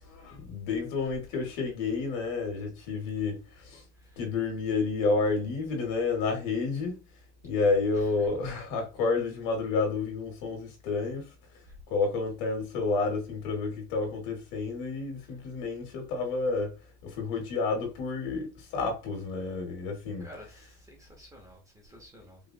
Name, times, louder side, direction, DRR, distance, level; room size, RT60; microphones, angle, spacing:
voice 1, 0.0-3.8 4.2-7.0 7.4-11.3 11.9-16.7 17.0-20.3, left 4 dB, 55° left, 1.8 m, -30 dB
voice 2, 7.9-8.3 11.7-11.8 20.2-22.4, equal, 10° right, 0.8 m, -51 dB
5.0 x 2.4 x 2.4 m
supercardioid pair, 140°, 34 cm